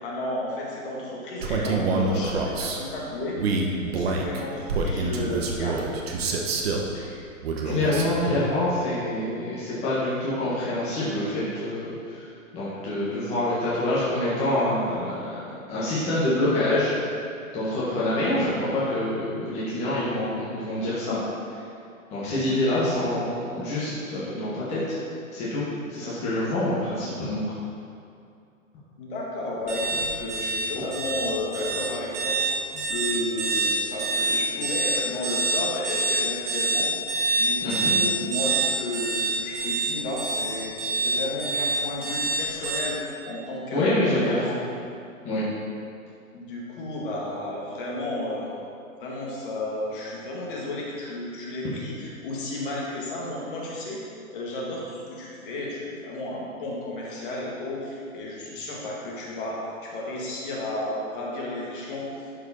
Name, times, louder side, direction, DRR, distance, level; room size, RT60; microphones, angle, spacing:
voice 1, 0.0-5.9 29.0-36.9 37.4-44.5 46.3-48.5 49.0-54.0 54.3-62.3, left 1 dB, 40° left, -4 dB, 1.8 m, -33 dB
Male speech man speaking, 1.4-2.8 3.4-6.9 7.4-8.1, right 3 dB, 45° right, 1.0 m, -26 dB
voice 2, 7.6-12.3 12.5-15.4 15.7-16.9 17.5-21.2 22.1-25.0 25.3-25.6 25.9-27.4 37.6-37.9 43.7-44.5 45.2-45.4, left 1 dB, 15° left, -9 dB, 1.4 m, -26 dB
sound 1, 29.7-42.8, right 3 dB, 20° right, 1.3 m, -26 dB
11.5 x 4.9 x 4.2 m, 2.4 s
hypercardioid pair, 155°, 41 cm